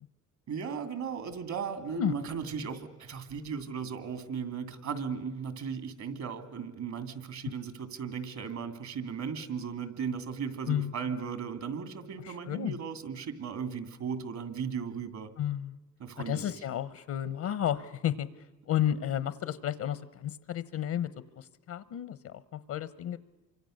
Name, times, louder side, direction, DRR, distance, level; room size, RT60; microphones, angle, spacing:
voice 1, 0.5-15.3 16.0-16.4, right 6 dB, 65° right, 10 dB, 2.8 m, -36 dB
voice 2, 12.2-12.8 15.4-15.8 16.3-18.3 18.7-21.1 21.4-23.2, left 10 dB, 70° left, 16 dB, 1.0 m, -32 dB
28.0 x 25.0 x 6.6 m, 1.1 s
cardioid pair, 90°, 30 cm